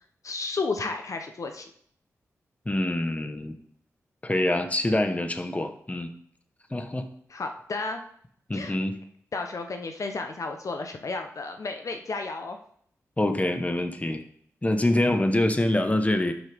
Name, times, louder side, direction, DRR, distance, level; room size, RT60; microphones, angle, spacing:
voice 1, 0.2-1.7 7.3-8.0 8.5-8.7 9.3-12.6, left 3 dB, 60° left, 5 dB, 0.9 m, -32 dB
voice 2, 2.6-3.6 4.2-6.1 6.7-7.1 8.5-9.0 13.2-14.2 14.6-16.3, left 1 dB, 25° left, 7 dB, 1.3 m, -25 dB
11.0 x 6.3 x 3.6 m, 0.63 s
cardioid pair, 45°, 6 cm